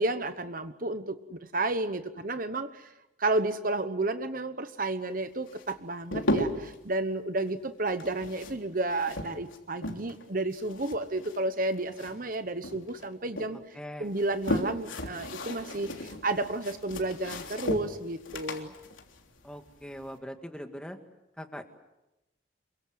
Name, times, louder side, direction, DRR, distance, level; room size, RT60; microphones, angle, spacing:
voice 1, 0.0-2.9 3.2-18.7, right 2 dB, 45° right, 10 dB, 1.1 m, -32 dB
sound 1, 5.5-6.8 7.9-10.2 10.5-12.4 12.6-13.5 14.0-20.1, left 1 dB, 85° left, 3.5 m, -35 dB
voice 2, 13.7-14.1 19.4-21.0 21.4-21.6, equal, 5° left, 5 dB, 1.9 m, -41 dB
28.0 x 23.5 x 7.9 m, 0.95 s
head